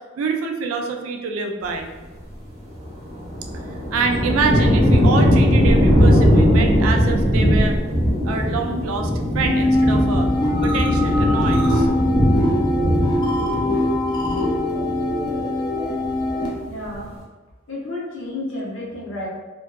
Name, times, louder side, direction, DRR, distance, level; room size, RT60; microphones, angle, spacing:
voice 1, 0.2-1.9 3.9-7.8 8.2-10.3 10.6-11.9, right 4 dB, 85° right, 4 dB, 0.3 m, -26 dB
sound 1, 2.8-15.6 15.9-16.5, equal, 30° right, 0.6 m, -19 dB
sound 2, 9.5-16.5, left 1 dB, 20° left, 0.4 m, -22 dB
voice 2, 16.6-17.1 17.7-19.3, left 2 dB, 70° left, -5 dB, 0.8 m, -31 dB
2.6 x 2.2 x 2.2 m, 1.3 s
head